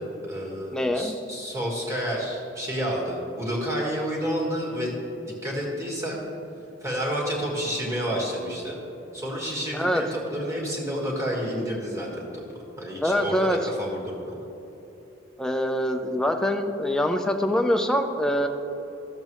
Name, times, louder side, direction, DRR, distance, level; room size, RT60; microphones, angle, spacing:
voice 1, 0.0-5.0 5.3-6.2 6.8-8.8 9.1-12.4 12.8-14.4, equal, 15° right, -3 dB, 1.6 m, -30 dB
voice 2, 0.7-1.2 9.7-10.0 13.0-13.6 15.4-18.5, equal, 5° left, 4 dB, 0.4 m, -24 dB
13.5 x 7.3 x 3.1 m, 3.0 s
head